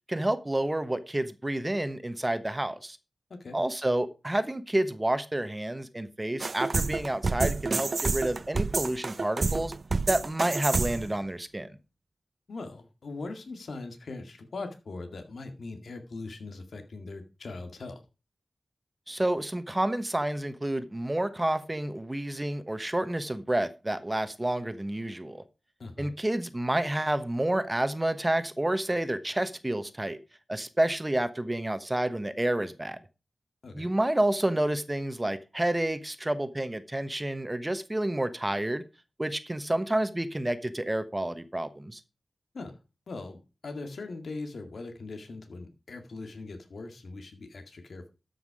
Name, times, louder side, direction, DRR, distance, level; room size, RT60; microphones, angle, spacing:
voice 1, 0.1-3.0 3.5-9.7 10.1-11.7 19.1-25.4 26.0-30.2 30.5-33.0 33.7-38.8 39.2-42.0, right 1 dB, 20° right, 1.1 m, -29 dB
sound 1, 6.4-11.2, right 3 dB, 55° right, 0.5 m, -29 dB
voice 2, 12.5-18.0 25.8-26.1 33.6-33.9 42.5-42.7 43.1-48.1, left 3 dB, 75° left, 2.0 m, -40 dB
13.0 x 5.9 x 4.9 m
cardioid pair, 60°, 0 cm